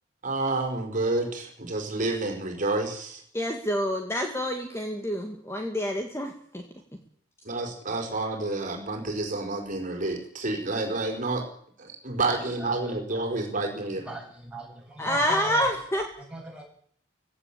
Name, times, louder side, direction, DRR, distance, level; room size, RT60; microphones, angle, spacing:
voice 1, 0.2-3.2 7.4-11.4 11.8-14.1, right 2 dB, 40° right, 3 dB, 4.7 m, -29 dB
voice 2, 3.3-6.6 15.0-16.1, equal, 15° left, 3 dB, 2.1 m, -28 dB
voice 3, 12.6-13.3 14.0-15.7 16.2-16.6, right 1 dB, 5° right, -2 dB, 7.5 m, -40 dB
18.0 x 16.5 x 8.6 m, 0.63 s
head